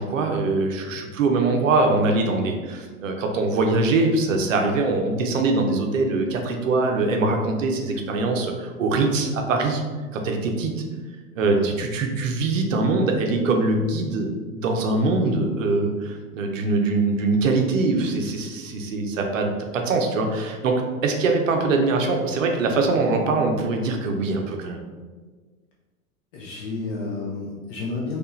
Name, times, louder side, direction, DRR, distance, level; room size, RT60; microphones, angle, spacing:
voice 1, 0.0-9.8 10.1-10.8 11.3-24.8, right 3 dB, 60° right, 3 dB, 0.7 m, -23 dB
voice 2, 11.4-11.7 26.3-28.2, left 3 dB, 20° left, -4 dB, 0.3 m, -31 dB
4.3 x 2.4 x 3.1 m, 1.4 s
figure-of-eight pair, 90°, 44 cm